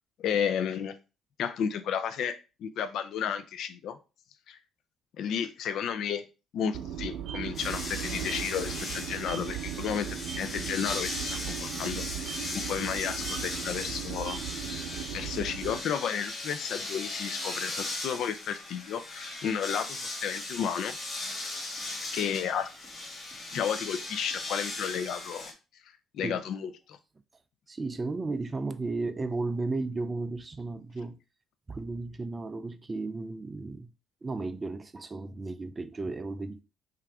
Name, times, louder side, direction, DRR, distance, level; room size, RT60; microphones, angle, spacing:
voice 1, 0.2-0.9 1.4-4.0 4.5-4.6 5.2-6.2 6.5-14.4 15.1-21.0 22.1-22.7 23.5-25.5 26.1-27.0, left 8 dB, 65° left, 0.5 m, -32 dB
sound 1, 6.7-15.8, right 10 dB, 75° right, 0.5 m, -37 dB
sound 2, 7.5-25.5, left 2 dB, 30° left, 1.4 m, -38 dB
voice 2, 27.7-31.2 31.7-33.9 34.2-36.6, right 3 dB, 20° right, 0.3 m, -34 dB
5.7 x 2.5 x 3.5 m
cardioid pair, 145°, 0 cm